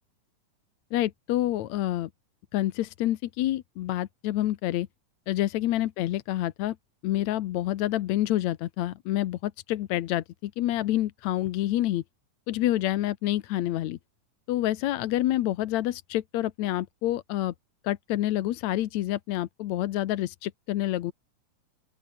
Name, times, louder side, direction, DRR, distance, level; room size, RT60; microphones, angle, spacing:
voice 1, 0.9-2.1 2.5-4.9 5.3-6.8 7.0-12.0 12.5-14.0 14.5-17.5 17.8-21.1, left 14 dB, 70° left, 2.0 m, -28 dB
open air
omnidirectional pair, 3.7 m